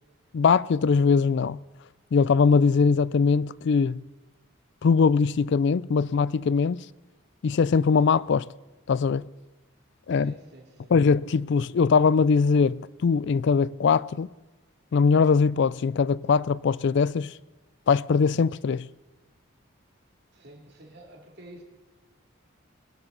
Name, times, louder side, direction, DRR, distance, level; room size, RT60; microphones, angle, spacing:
voice 1, 0.3-1.6 2.1-4.0 4.8-6.8 7.4-8.5 8.9-9.3 10.1-10.3 10.9-14.3 14.9-17.3 17.9-18.9, left 5 dB, 55° left, 0.3 m, -21 dB
voice 2, 10.1-11.0 20.3-21.6, right 1 dB, 50° right, 2.7 m, -49 dB
21.0 x 12.0 x 3.9 m
head